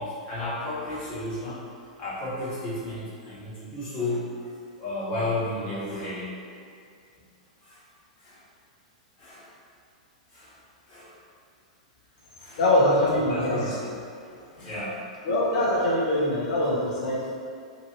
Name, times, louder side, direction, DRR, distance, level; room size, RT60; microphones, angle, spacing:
voice 1, 0.0-1.6 2.0-4.3 4.8-6.4 7.6-7.8 8.2-8.4 9.2-9.5 10.3-10.5 10.9-11.1 12.4-12.6 13.3-15.0, left 2 dB, 35° left, -10 dB, 1.3 m, -33 dB
voice 2, 12.6-13.6 14.6-14.7 15.2-17.4, left 1 dB, 55° left, -6 dB, 0.9 m, -23 dB
3.0 x 2.6 x 3.0 m, 2.3 s
figure-of-eight pair, 100°, 4 cm